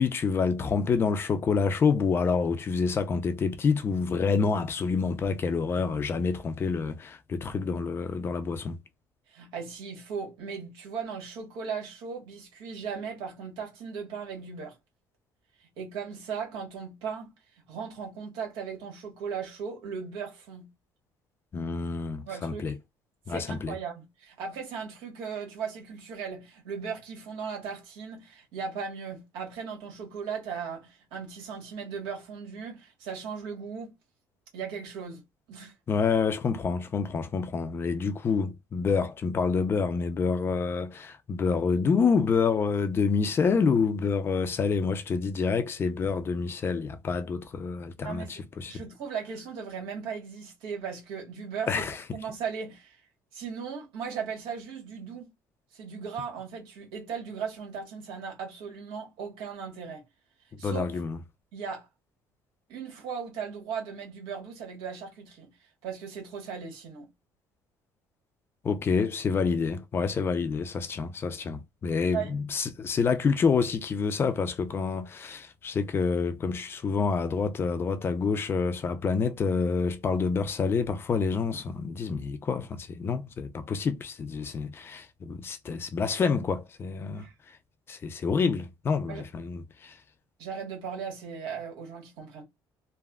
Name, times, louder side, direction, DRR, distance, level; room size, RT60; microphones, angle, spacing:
voice 1, 0.0-8.8 21.5-22.7 23.3-23.8 35.9-48.2 48.6-48.8 51.7-52.0 60.6-61.2 68.6-87.3 87.9-90.0, left 5 dB, 30° left, 0.4 m, -27 dB
voice 2, 9.3-14.8 15.8-17.3 17.7-20.7 22.3-22.7 23.3-33.9 34.5-35.2 35.5-35.7 48.0-48.4 48.7-51.9 52.1-53.0 53.3-55.3 55.7-60.0 60.6-61.0 61.5-61.9 62.7-65.5 65.8-67.1 72.1-72.3 87.1-87.3 89.1-89.2 90.4-92.4, right 6 dB, 85° right, 1.4 m, -37 dB
3.3 x 2.0 x 2.3 m
cardioid pair, 135°, 8 cm